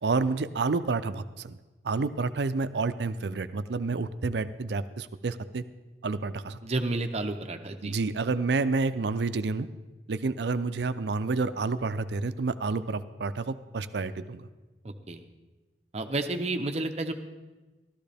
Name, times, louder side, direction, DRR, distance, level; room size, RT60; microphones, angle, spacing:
voice 1, 0.0-1.6 1.8-5.6 6.0-6.6 7.8-9.7 10.1-14.5, right 3 dB, 75° right, 12 dB, 0.5 m, -29 dB
voice 2, 6.6-8.0 14.8-15.2 15.9-17.1, right 2 dB, 35° right, 7 dB, 0.7 m, -31 dB
14.0 x 13.0 x 3.4 m, 1.2 s
head